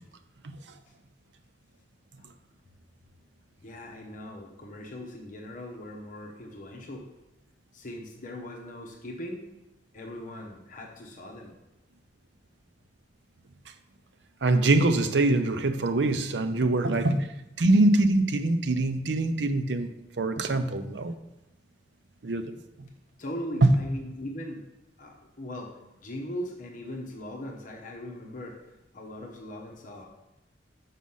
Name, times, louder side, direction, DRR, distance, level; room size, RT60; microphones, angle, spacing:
voice 1, 3.6-7.0 7.7-9.5 9.9-11.5 23.2-24.6 25.0-25.7 26.0-28.6 28.9-30.1, left 1 dB, 45° left, 0 dB, 1.0 m, -39 dB
voice 2, 14.4-17.3 17.6-19.9 20.2-21.1 22.2-22.9 23.6-23.8, right 2 dB, 70° right, 9 dB, 0.6 m, -24 dB
6.2 x 5.7 x 5.5 m, 0.96 s
head